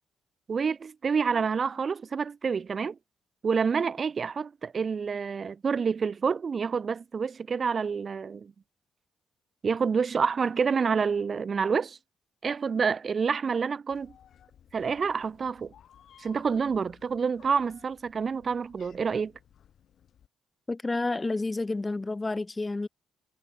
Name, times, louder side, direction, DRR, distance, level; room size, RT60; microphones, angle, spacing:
voice 1, 0.5-3.0 3.4-8.5 9.6-12.0 12.4-14.1 14.7-15.7 16.2-19.3, right 5 dB, 40° right, 0.5 m, -28 dB
Meow, 13.9-20.3, left 9 dB, 65° left, 2.4 m, -58 dB
voice 2, 20.7-22.9, left 2 dB, 20° left, 0.5 m, -30 dB
cardioid pair, 90°, 0 cm